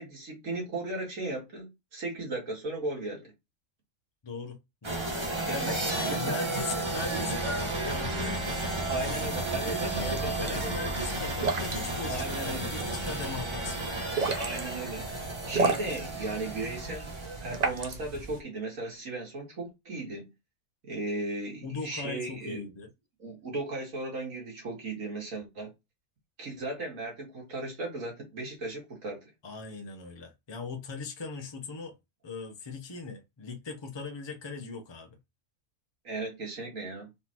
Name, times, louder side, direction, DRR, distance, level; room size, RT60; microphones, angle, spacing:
voice 1, 0.0-3.3 5.4-6.4 8.9-10.9 12.1-12.7 14.4-15.1 15.5-17.1 17.4-20.3 20.8-22.6 23.2-25.7 26.4-29.3 36.0-37.1, right 2 dB, 75° right, 2.2 m, -36 dB
voice 2, 4.2-5.1 5.5-8.7 9.7-14.3 21.6-22.9 29.4-32.0 32.2-35.2, left 3 dB, 25° left, 0.7 m, -39 dB
sound 1, 4.8-17.7, right 2 dB, 25° right, 1.1 m, -33 dB
sound 2, 9.9-18.4, right 4 dB, 40° right, 0.6 m, -35 dB
4.1 x 3.9 x 2.9 m
omnidirectional pair, 1.4 m